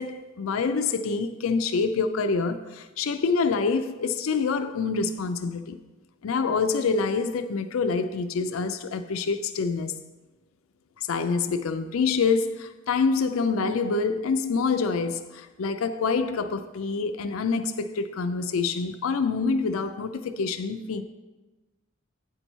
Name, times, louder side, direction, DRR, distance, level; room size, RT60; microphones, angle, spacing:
voice 1, 0.0-5.8 6.2-9.9 11.0-21.0, left 4 dB, 75° left, 0.4 m, -26 dB
8.6 x 4.5 x 5.4 m
head